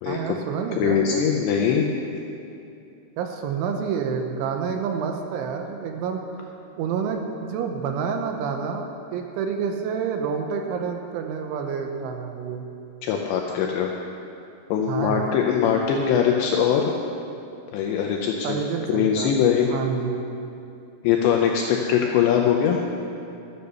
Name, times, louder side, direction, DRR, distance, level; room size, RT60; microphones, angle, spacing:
voice 1, 0.1-1.2 3.2-6.2 6.8-12.6 14.9-15.3 18.4-19.3 19.7-20.3, right 6 dB, 80° right, 4 dB, 3.1 m, -28 dB
voice 2, 0.8-1.9 13.0-13.9 14.7-16.9 17.7-18.6 18.9-19.7 21.0-22.8, left 8 dB, 80° left, 1 dB, 2.6 m, -21 dB
13.5 x 8.4 x 6.8 m, 2.7 s
omnidirectional pair, 5.9 m